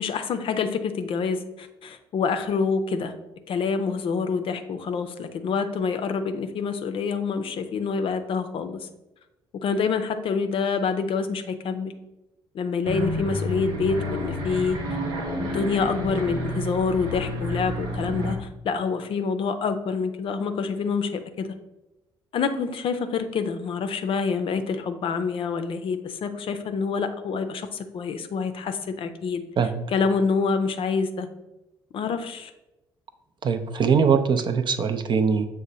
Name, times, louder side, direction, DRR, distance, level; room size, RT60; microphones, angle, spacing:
voice 1, 0.0-3.1 3.5-8.9 9.5-11.9 12.5-14.8 15.3-21.5 22.3-29.4 29.9-31.3 31.9-32.5, left 5 dB, 55° left, 8 dB, 0.5 m, -27 dB
sound 1, 12.8-18.4, equal, 85° right, 0.7 m, -30 dB
voice 2, 33.4-35.5, right 6 dB, 45° right, 8 dB, 0.5 m, -22 dB
6.2 x 2.1 x 3.9 m, 0.97 s
hypercardioid pair, 50°, 11 cm